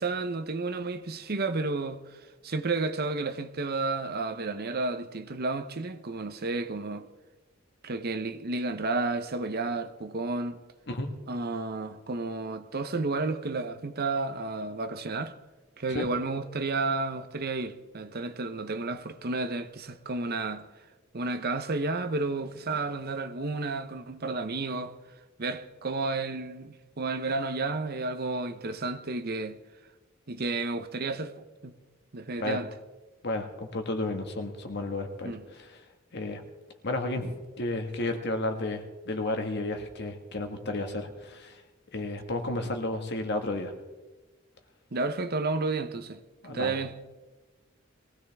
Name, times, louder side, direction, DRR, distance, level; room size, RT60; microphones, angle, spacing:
voice 1, 0.0-2.0 2.4-7.1 7.8-10.6 11.3-15.3 15.8-20.7 21.1-24.9 25.4-29.6 30.3-31.7 32.1-32.7 35.2-35.4 44.9-46.2 46.5-46.9, right 3 dB, 50° right, 0.9 m, -31 dB
voice 2, 33.2-35.8 36.1-36.4 36.8-41.6 41.9-43.8 46.4-46.8, left 2 dB, 55° left, 1.7 m, -32 dB
21.5 x 16.5 x 3.6 m
head